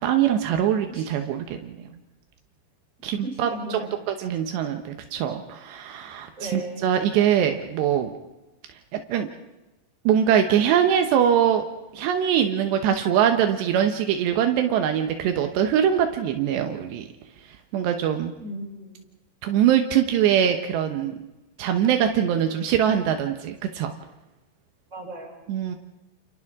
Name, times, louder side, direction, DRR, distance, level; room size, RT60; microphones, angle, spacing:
voice 1, 0.0-1.8 3.0-3.8 4.1-8.1 8.9-9.3 10.1-11.7 11.9-17.0 17.7-18.3 19.4-21.2 21.6-23.9 25.5-25.8, right 9 dB, 80° right, 6 dB, 3.3 m, -22 dB
voice 2, 3.2-3.9 6.4-6.8 18.4-19.0 24.9-25.4, right 1 dB, 15° right, -1 dB, 6.3 m, -36 dB
29.5 x 29.0 x 3.7 m, 1.0 s
omnidirectional pair, 4.9 m